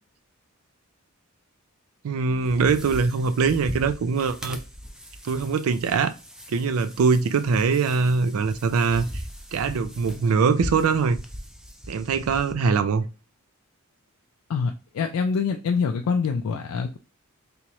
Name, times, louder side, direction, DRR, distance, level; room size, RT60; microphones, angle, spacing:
voice 1, 2.0-4.6 5.2-6.1 6.5-9.1 9.5-11.2 11.9-13.0, right 5 dB, 75° right, 0.4 m, -22 dB
sound 1, 2.3-12.5, equal, 5° right, 0.3 m, -39 dB
voice 2, 14.5-17.0, left 5 dB, 90° left, 0.3 m, -25 dB
3.4 x 2.9 x 3.0 m
head